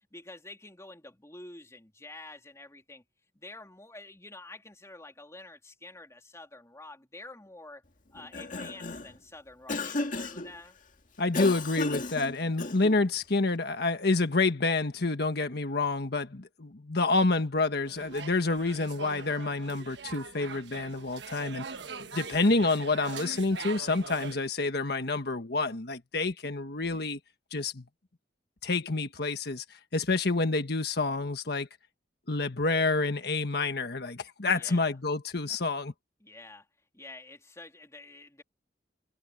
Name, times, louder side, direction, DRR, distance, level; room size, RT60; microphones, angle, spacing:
voice 1, 0.1-3.0 3.3-7.8 8.1-10.8 34.5-34.9 36.2-36.7 36.9-38.4, left 2 dB, 15° left, 3.4 m, -48 dB
Cough, 8.1-9.2 9.7-10.5 11.3-13.0, left 2 dB, 50° left, 2.2 m, -34 dB
voice 2, 11.2-21.7 22.1-27.2 27.5-27.8 28.6-31.7 32.3-35.9, left 3 dB, 65° left, 1.5 m, -28 dB
sound 1, 17.8-24.4, right 5 dB, 80° right, 1.3 m, -42 dB
head